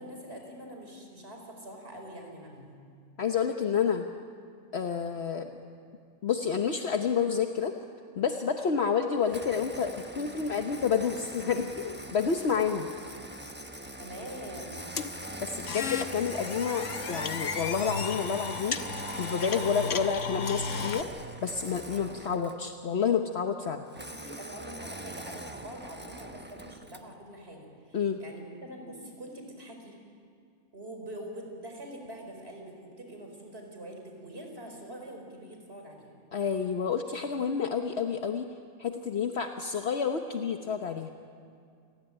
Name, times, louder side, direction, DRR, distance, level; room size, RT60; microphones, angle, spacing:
voice 1, 0.0-2.8 14.0-14.9 24.0-29.9 30.7-36.1, right 1 dB, 55° right, 2 dB, 5.1 m, -44 dB
voice 2, 3.2-4.1 4.7-5.5 6.2-7.7 8.2-12.9 15.4-18.9 19.2-21.1 21.4-23.9 27.9-28.2 36.3-38.5 38.8-41.1, left 6 dB, 60° left, 5 dB, 1.3 m, -29 dB
Engine starting, 9.3-22.7 23.9-27.1, right 1 dB, 10° right, 1.1 m, -42 dB
sound 1, 15.0-21.0, left 5 dB, 80° left, 1.4 m, -35 dB
28.5 x 21.0 x 9.0 m, 2.3 s
omnidirectional pair, 1.3 m